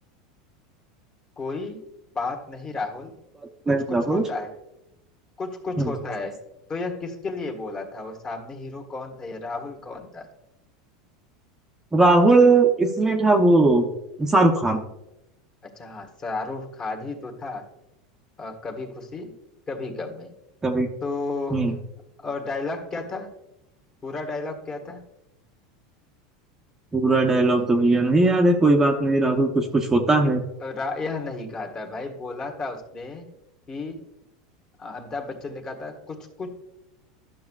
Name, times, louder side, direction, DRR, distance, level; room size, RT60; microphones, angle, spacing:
voice 1, 1.4-1.8 2.1-3.2 3.7-4.5 5.4-6.4 6.7-10.3 15.6-17.7 18.4-19.3 19.7-20.3 21.0-21.6 22.2-23.3 24.0-25.0 30.6-33.3 33.7-34.0 34.8-36.5, left 3 dB, 30° left, 2 dB, 1.5 m, -33 dB
voice 2, 3.7-4.2 5.8-5.9 11.9-13.9 14.2-14.8 20.6-20.9 21.5-21.7 26.9-30.4, right 2 dB, 15° right, 2 dB, 0.7 m, -19 dB
11.5 x 6.2 x 2.4 m, 0.90 s
supercardioid pair, 115°, 3 cm